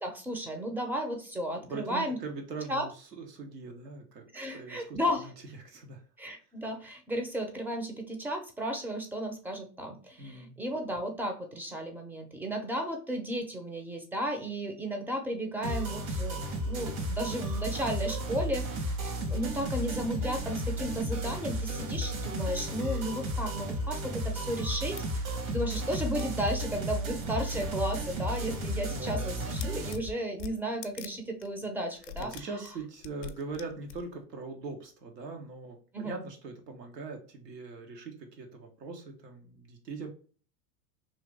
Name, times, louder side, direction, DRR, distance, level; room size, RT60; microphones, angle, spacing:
voice 1, 0.0-2.2 2.7-2.9 4.3-5.3 6.2-32.3 35.9-36.2, equal, 5° right, 4 dB, 0.5 m, -34 dB
voice 2, 1.6-5.3 5.6-6.0 10.2-10.5 28.9-29.5 32.2-40.1, right 3 dB, 85° right, 3 dB, 1.3 m, -41 dB
sound 1, 15.6-29.9, equal, 60° right, 1.4 m, -33 dB
sound 2, 24.8-25.0 25.5-25.6 25.8-26.8 27.5-27.7 28.1-28.9 29.2-31.1 31.4-31.5 32.0-34.2, left 7 dB, 55° left, 0.5 m, -44 dB
3.1 x 2.5 x 3.3 m, 0.39 s
hypercardioid pair, 110°, 47 cm